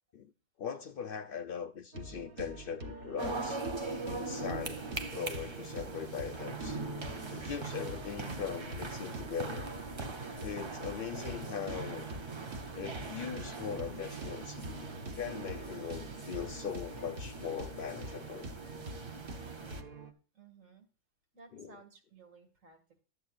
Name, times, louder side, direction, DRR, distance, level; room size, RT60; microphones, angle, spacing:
voice 1, 0.6-3.7 4.1-6.8 7.3-10.1 10.4-12.1 12.7-14.9 15.1-18.5 21.5-21.8, left 7 dB, 60° left, 0.6 m, -40 dB
sound 1, 1.9-20.1, right 2 dB, 50° right, 1.1 m, -46 dB
sound 2, 3.2-19.8, right 3 dB, 30° right, 0.5 m, -41 dB
voice 2, 20.3-20.9 21.3-23.0, right 4 dB, 85° right, 2.1 m, -57 dB
11.5 x 8.4 x 2.4 m
omnidirectional pair, 1.3 m